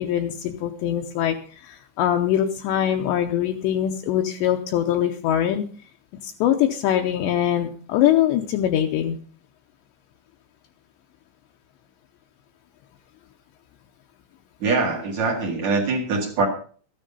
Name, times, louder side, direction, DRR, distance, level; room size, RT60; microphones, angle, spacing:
voice 1, 0.0-5.6 6.2-9.2, left 11 dB, 80° left, 3 dB, 2.8 m, -23 dB
voice 2, 14.6-16.5, right 3 dB, 50° right, 2 dB, 2.4 m, -23 dB
14.0 x 10.0 x 5.4 m, 0.42 s
omnidirectional pair, 5.5 m